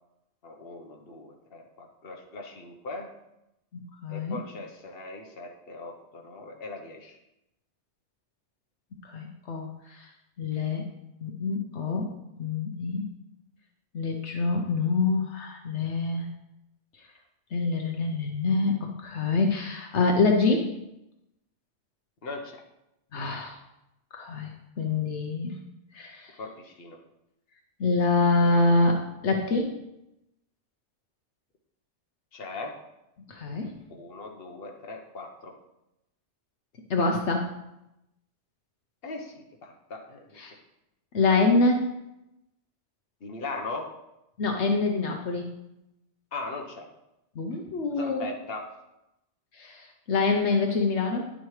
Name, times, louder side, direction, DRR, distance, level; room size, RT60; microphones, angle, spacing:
voice 1, 0.4-3.2 4.1-7.2 22.2-22.6 26.4-27.0 32.3-32.8 33.9-35.6 39.0-40.2 43.2-44.0 46.3-46.9 47.9-48.7, left 3 dB, 55° left, 2 dB, 1.3 m, -39 dB
voice 2, 3.7-4.4 9.0-10.1 10.4-10.8 11.2-12.1 12.4-13.0 13.9-16.3 17.5-20.7 23.1-23.6 24.2-24.5 24.8-25.6 25.9-26.4 27.8-29.7 33.3-33.7 36.9-37.5 40.4-40.5 41.1-41.9 44.4-45.5 47.4-48.3 49.5-51.3, left 3 dB, 75° left, 2 dB, 1.2 m, -26 dB
10.5 x 7.8 x 3.2 m, 0.89 s
omnidirectional pair, 1.2 m